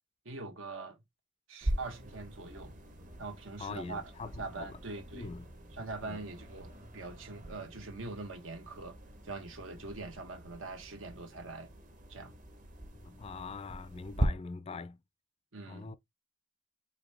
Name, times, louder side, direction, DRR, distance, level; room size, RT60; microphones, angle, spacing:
voice 1, 0.2-1.0 1.5-2.8 3.2-5.3 5.7-9.0 9.2-11.7 12.1-12.3 15.5-16.0, right 3 dB, 85° right, 1.1 m, -43 dB
sound 1, 1.6-14.3, right 1 dB, 40° right, 0.9 m, -41 dB
voice 2, 3.6-4.7 5.1-5.4 6.0-6.2 13.0-15.0 15.7-16.0, left 4 dB, 30° left, 0.3 m, -43 dB
4.9 x 2.6 x 3.4 m
head